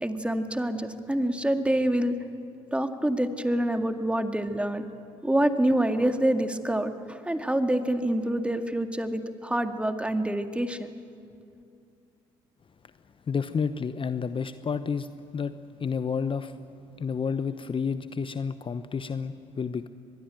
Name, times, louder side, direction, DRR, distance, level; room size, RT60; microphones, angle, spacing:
voice 1, 0.0-2.2 2.7-4.9 5.2-10.9, right 1 dB, 5° right, 6 dB, 2.1 m, -26 dB
voice 2, 13.3-15.1 15.3-15.5 15.8-16.6 17.0-19.9, left 6 dB, 35° left, 12 dB, 0.9 m, -30 dB
24.5 x 21.5 x 9.1 m, 2.5 s
hypercardioid pair, 55°, 15 cm